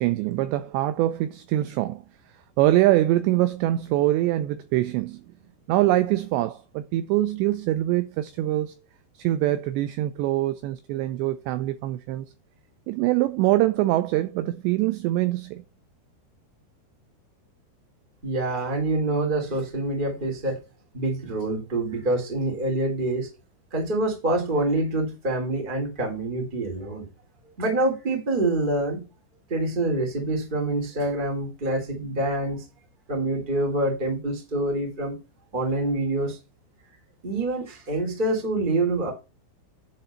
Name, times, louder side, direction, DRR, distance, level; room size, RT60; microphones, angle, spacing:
voice 1, 0.0-2.0 2.6-5.2 5.7-8.7 9.2-12.3 12.9-15.6, right 15 dB, 85° right, 2.5 m, -24 dB
voice 2, 18.2-20.6 20.9-23.3 23.7-27.1 27.6-29.0 29.5-32.6 33.1-35.2 35.5-36.4 37.2-39.1, right 2 dB, 15° right, 1.8 m, -26 dB
11.0 x 4.0 x 5.7 m
omnidirectional pair, 5.6 m